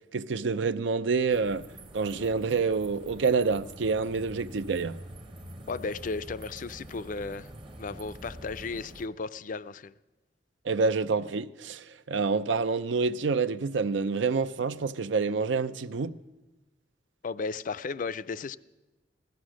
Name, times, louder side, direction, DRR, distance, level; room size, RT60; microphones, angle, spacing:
voice 1, 0.1-1.6 1.9-5.0 10.6-16.2, right 4 dB, 85° right, 0.5 m, -27 dB
sound 1, 1.3-9.1, right 1 dB, 25° right, 0.8 m, -46 dB
voice 2, 5.7-7.5 7.8-9.9 17.2-18.6, left 4 dB, 45° left, 0.4 m, -35 dB
16.0 x 13.0 x 6.3 m
head